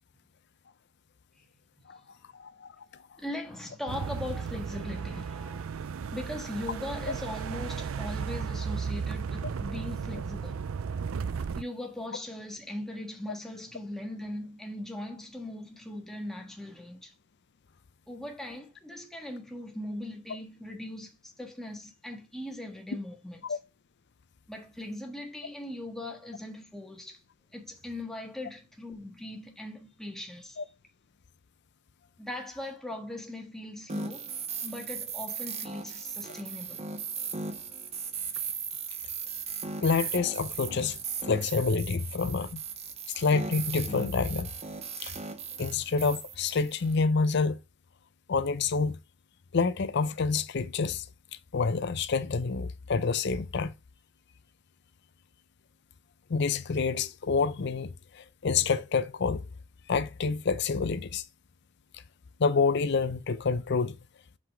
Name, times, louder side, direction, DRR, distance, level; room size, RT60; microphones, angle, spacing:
voice 1, 2.3-2.7 23.5-23.6 30.6-30.7 39.8-41.0 41.3-42.6 43.2-44.5 45.0-45.1 45.6-47.6 48.3-49.0 49.5-51.0 51.5-53.7 56.3-59.4 59.9-61.2 62.4-64.0, left 4 dB, 55° left, 0.5 m, -27 dB
voice 2, 3.2-5.7 6.1-10.6 11.5-17.1 18.1-23.6 24.5-27.2 27.5-30.6 32.2-34.3 34.6-36.9, left 1 dB, ahead, 1.4 m, -40 dB
sound 1, 3.9-11.6, right 6 dB, 90° right, 0.4 m, -35 dB
sound 2, 33.9-46.9, right 6 dB, 30° right, 0.8 m, -37 dB
5.8 x 5.0 x 4.7 m
head